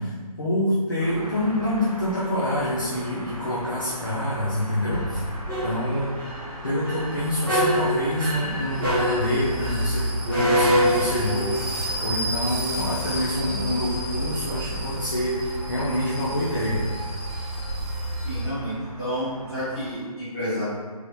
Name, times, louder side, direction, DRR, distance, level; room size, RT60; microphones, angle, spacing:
voice 1, 0.0-5.4 5.6-6.1 6.6-16.8, left 1 dB, 35° left, -8 dB, 0.5 m, -26 dB
sound 1, 1.0-20.0, equal, 65° right, 0.9 m, -40 dB
sound 2, 4.9-18.4, equal, 35° right, 1.0 m, -27 dB
voice 2, 18.2-20.6, equal, 10° left, -15 dB, 1.2 m, -30 dB
3.2 x 3.0 x 2.6 m, 1.5 s
figure-of-eight pair, 165°, 20 cm